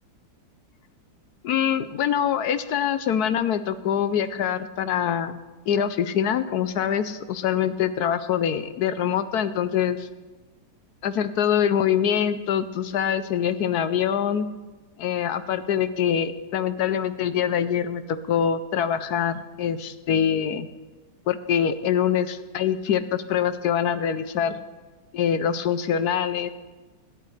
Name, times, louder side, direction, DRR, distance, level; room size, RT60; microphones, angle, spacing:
voice 1, 1.4-5.4 5.7-10.1 11.0-14.5 15.0-20.7 21.3-24.6 25.1-26.5, left 9 dB, 70° left, 12 dB, 1.0 m, -24 dB
27.5 x 11.5 x 3.3 m, 1.2 s
omnidirectional pair, 2.1 m